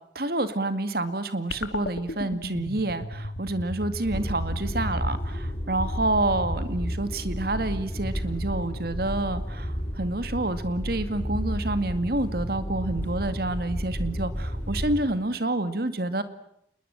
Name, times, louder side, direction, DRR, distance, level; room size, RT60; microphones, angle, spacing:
voice 1, 0.2-16.2, right 2 dB, 60° right, 12 dB, 2.2 m, -28 dB
sound 1, 1.5-8.0, left 1 dB, 90° left, 2.1 m, -36 dB
sound 2, 4.1-15.0, equal, 10° left, 7.2 m, -32 dB
27.5 x 21.0 x 8.9 m, 0.74 s
head